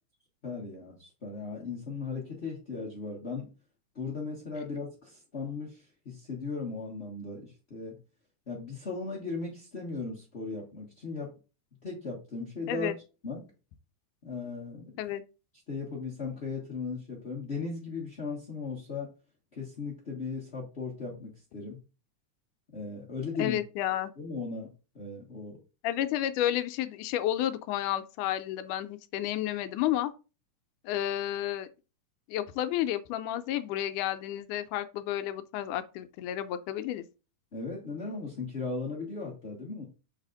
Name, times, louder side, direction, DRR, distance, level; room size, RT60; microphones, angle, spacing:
voice 1, 0.4-3.5 3.9-8.0 8.5-11.3 11.8-13.0 13.2-13.5 14.2-14.9 15.7-19.1 19.5-21.8 22.7-23.6 24.2-25.6 37.5-39.8, left 4 dB, 50° left, 0.7 m, -37 dB
voice 2, 23.4-24.1 25.8-30.1 30.8-31.7 32.3-37.0, left 12 dB, 85° left, 2.1 m, -31 dB
6.7 x 4.1 x 3.8 m
omnidirectional pair, 3.7 m